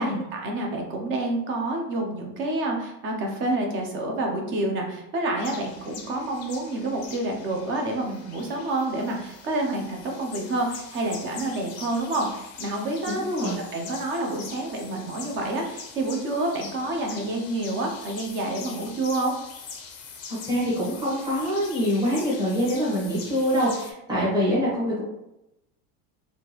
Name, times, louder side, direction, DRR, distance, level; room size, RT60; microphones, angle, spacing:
voice 1, 0.0-19.3, right 2 dB, 25° right, 1 dB, 0.5 m, -28 dB
sound 1, 5.4-23.9, left 5 dB, 35° left, 0.5 m, -43 dB
voice 2, 13.1-13.6 20.3-25.0, equal, 10° right, -8 dB, 1.1 m, -25 dB
3.6 x 2.5 x 2.9 m, 0.87 s
supercardioid pair, 160°, 47 cm